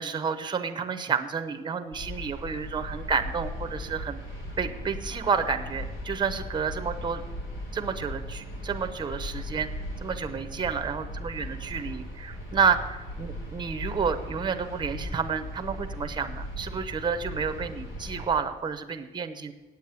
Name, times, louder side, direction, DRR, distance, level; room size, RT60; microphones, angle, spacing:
voice 1, 0.0-4.2 4.6-7.2 7.7-9.7 10.0-19.5, right 6 dB, 20° right, 8 dB, 0.7 m, -30 dB
sound 1, 1.9-18.2, left 1 dB, 70° left, 4.1 m, -38 dB
8.4 x 8.3 x 8.2 m, 1.2 s
cardioid pair, 135°, 20 cm